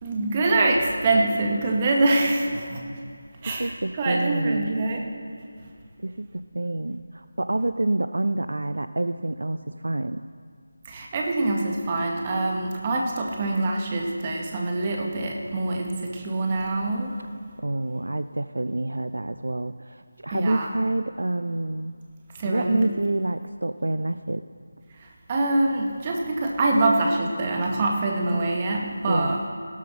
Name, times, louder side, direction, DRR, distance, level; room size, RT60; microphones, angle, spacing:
voice 1, 0.0-2.8 3.4-5.1 10.9-17.1 20.3-20.7 22.3-22.9 25.0-29.4, right 2 dB, 25° right, 0 dB, 1.9 m, -25 dB
voice 2, 3.4-4.7 6.0-10.2 17.6-21.9 22.4-24.4 29.1-29.4, right 2 dB, 65° right, 12 dB, 0.5 m, -27 dB
16.5 x 12.5 x 5.8 m, 2.3 s
figure-of-eight pair, 160°, 0 cm